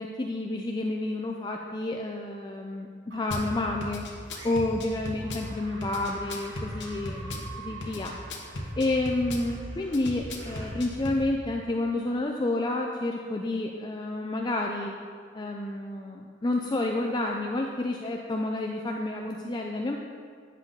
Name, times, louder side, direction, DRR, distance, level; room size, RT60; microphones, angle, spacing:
voice 1, 0.0-4.1 4.4-8.2 8.8-14.9 15.3-20.0, left 2 dB, 20° left, 1 dB, 0.4 m, -30 dB
sound 1, 3.1-3.7 4.3-4.9 5.2-11.6, right 2 dB, 70° right, 1.6 m, -47 dB
Drum kit / Bass drum, 3.3-3.5 3.8-5.5 5.8-7.5 7.8-9.5 9.9-11.2, left 1 dB, 60° left, 1.1 m, -36 dB
9.6 x 7.4 x 3.8 m, 2.1 s
head